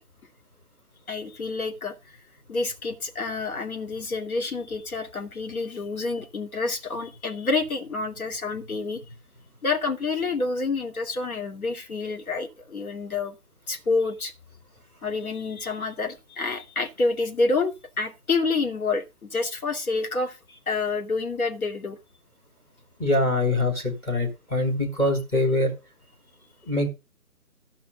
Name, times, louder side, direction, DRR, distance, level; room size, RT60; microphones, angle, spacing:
voice 1, 1.1-2.0 2.5-9.0 9.6-13.4 13.7-14.3 15.0-22.0, left 3 dB, 65° left, 2.6 m, -28 dB
voice 2, 23.0-25.7 26.7-26.9, left 1 dB, 5° left, 1.8 m, -24 dB
13.5 x 5.8 x 5.2 m
figure-of-eight pair, 155°, 46 cm